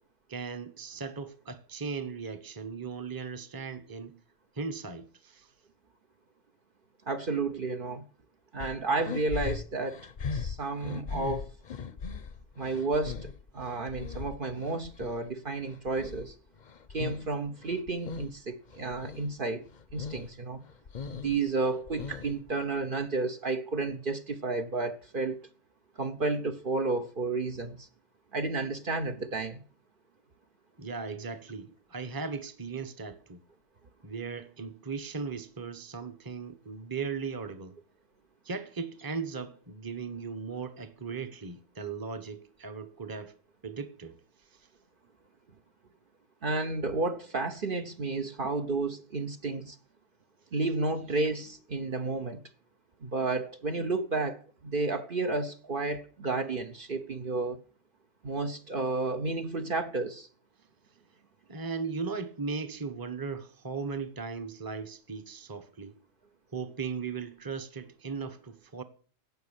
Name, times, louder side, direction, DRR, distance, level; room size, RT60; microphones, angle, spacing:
voice 1, 0.3-4.2 4.5-5.5 30.8-33.4 34.0-37.8 38.4-43.3 43.6-44.1 61.5-65.9 66.5-68.8, right 5 dB, 20° right, 1.0 m, -37 dB
voice 2, 7.1-8.0 8.5-10.0 10.3-11.5 12.6-16.3 16.9-19.6 19.9-20.6 21.1-25.4 26.0-27.9 28.3-29.6 46.4-49.8 50.5-52.4 53.0-57.6 58.2-60.3, right 3 dB, 50° right, 1.1 m, -31 dB
sound 1, 8.6-15.2 15.6-17.3 17.6-18.4 18.7-19.3 19.7-20.3 20.6-22.5, left 5 dB, 45° left, 0.8 m, -39 dB
16.5 x 6.1 x 8.2 m
omnidirectional pair, 1.2 m